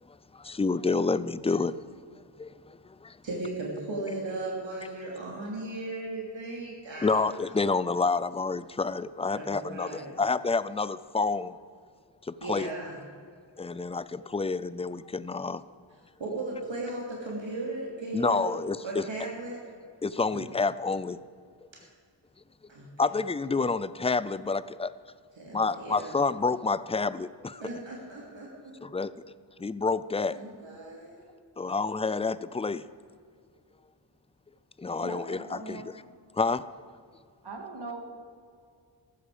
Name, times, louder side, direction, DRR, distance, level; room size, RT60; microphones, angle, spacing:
voice 1, 0.1-1.7 2.1-3.2 7.0-11.6 12.2-12.7 13.6-15.6 18.1-19.0 20.0-21.2 23.0-24.9 25.5-27.6 28.8-29.1 29.6-30.4 31.6-32.8 34.8-36.0 36.4-36.7, left 4 dB, 15° left, 16 dB, 0.3 m, -29 dB
voice 2, 3.2-7.3 9.3-10.1 12.4-13.0 16.2-18.5 18.8-19.6 20.3-20.5 21.8-21.9 22.7-22.9 25.4-26.1 27.6-28.7 30.3-31.2, right 2 dB, 75° right, -3 dB, 3.0 m, -36 dB
voice 3, 35.0-35.9 37.4-38.0, right 3 dB, 55° right, 2 dB, 2.3 m, -39 dB
15.0 x 12.5 x 5.0 m, 2.2 s
wide cardioid pair, 95°, 46 cm